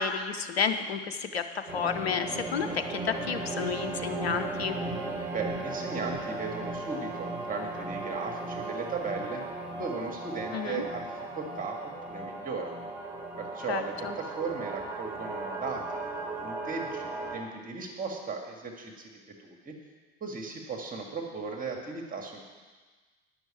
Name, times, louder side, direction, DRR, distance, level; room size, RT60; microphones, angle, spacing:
voice 1, 0.0-1.4 1.7-4.8 10.5-10.8 13.7-14.1, left 6 dB, 90° left, 9 dB, 0.9 m, -31 dB
sound 1, 1.7-17.4, right 2 dB, 5° right, 3.5 m, -36 dB
voice 2, 5.3-9.4 9.8-12.7 13.4-19.1 19.4-19.7 20.2-22.4, right 4 dB, 25° right, 1 dB, 1.8 m, -37 dB
10.5 x 6.3 x 8.7 m, 1.4 s
hypercardioid pair, 85°, 31 cm